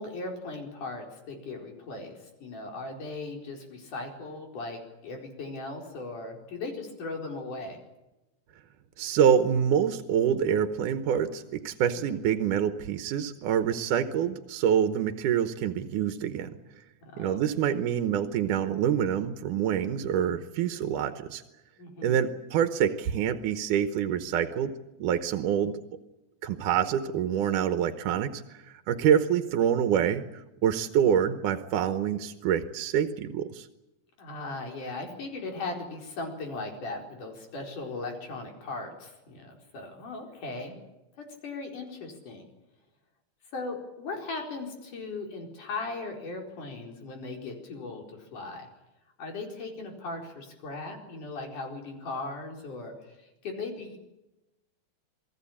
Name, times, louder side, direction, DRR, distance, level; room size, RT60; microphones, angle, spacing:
voice 1, 0.0-2.1 2.4-7.8 11.9-12.2 17.0-17.5 21.8-22.2 29.0-29.1 34.2-40.8 41.2-42.5 43.5-48.7 49.2-53.2 53.4-54.0, left 3 dB, 80° left, 2 dB, 6.0 m, -38 dB
voice 2, 9.0-16.6 17.2-21.4 22.0-24.7 25.0-25.7 26.4-33.7, right 9 dB, 90° right, 9 dB, 2.6 m, -26 dB
28.0 x 19.5 x 8.6 m, 0.99 s
omnidirectional pair, 3.5 m